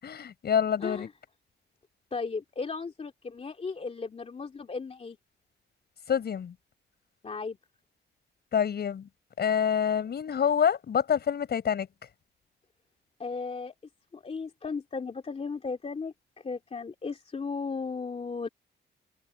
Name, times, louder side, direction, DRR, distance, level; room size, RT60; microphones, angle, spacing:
voice 1, 0.0-1.1 6.1-6.5 8.5-9.1 9.4-11.9, left 8 dB, 55° left, 7.2 m, -27 dB
voice 2, 0.8-1.1 2.1-5.2 7.2-7.6 13.2-13.7 14.1-18.5, left 4 dB, 30° left, 2.7 m, -35 dB
cardioid pair, 90°, 20 cm